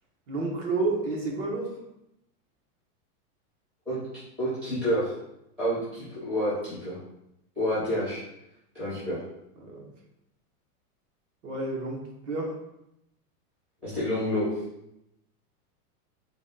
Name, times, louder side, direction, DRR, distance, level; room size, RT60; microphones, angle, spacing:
voice 1, 0.3-1.7 8.8-8.9 9.6-9.9 11.4-12.0 12.3-12.5, right 3 dB, 50° right, -1 dB, 1.0 m, -30 dB
voice 2, 4.4-5.1 5.6-7.0 7.6-8.2 8.7-9.2 13.8-14.5, equal, 5° right, -13 dB, 0.4 m, -28 dB
4.0 x 2.3 x 3.7 m, 0.83 s
supercardioid pair, 170°, 47 cm